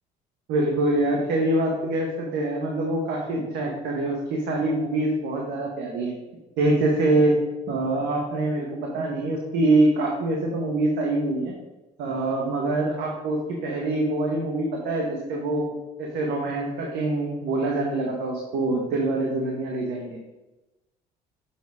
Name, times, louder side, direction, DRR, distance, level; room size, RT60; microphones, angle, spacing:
voice 1, 0.5-6.2 6.6-7.4 7.7-8.7 8.9-11.5 12.0-15.7 16.0-20.2, right 2 dB, 80° right, 0 dB, 1.3 m, -24 dB
7.1 x 6.6 x 3.5 m, 1.0 s
cardioid pair, 110°, 17 cm